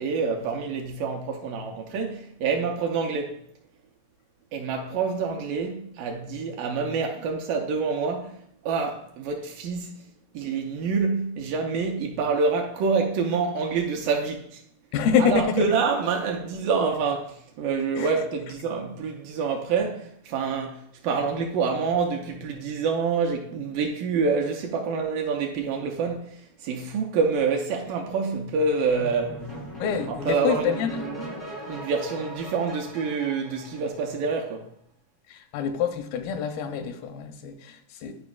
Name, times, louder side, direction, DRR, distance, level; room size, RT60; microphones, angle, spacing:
voice 1, 0.0-3.4 4.5-8.4 8.6-9.9 10.3-14.6 15.2-29.5 30.1-34.7, right 5 dB, 80° right, 2.1 m, -27 dB
voice 2, 14.9-15.5 18.0-18.1 29.8-31.0 35.3-38.2, left 7 dB, 85° left, 2.4 m, -26 dB
sound 1, 29.0-34.4, equal, 20° left, 0.4 m, -39 dB
10.5 x 4.9 x 2.3 m
omnidirectional pair, 4.2 m